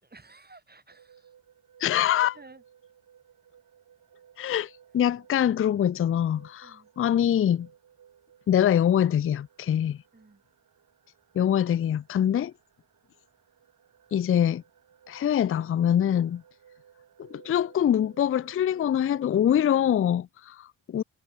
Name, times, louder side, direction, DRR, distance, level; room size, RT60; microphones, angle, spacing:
voice 1, 0.0-1.3 2.3-2.6 6.6-6.9 10.1-10.4, right 3 dB, 25° right, 5.1 m, -53 dB
sound 1, 0.9-19.9, right 8 dB, 55° right, 2.2 m, -58 dB
voice 2, 1.8-2.4 4.4-7.7 8.5-10.0 11.3-12.5 14.1-14.6 15.1-16.4 17.2-21.0, left 10 dB, 35° left, 0.5 m, -24 dB
supercardioid pair, 60°, 39 cm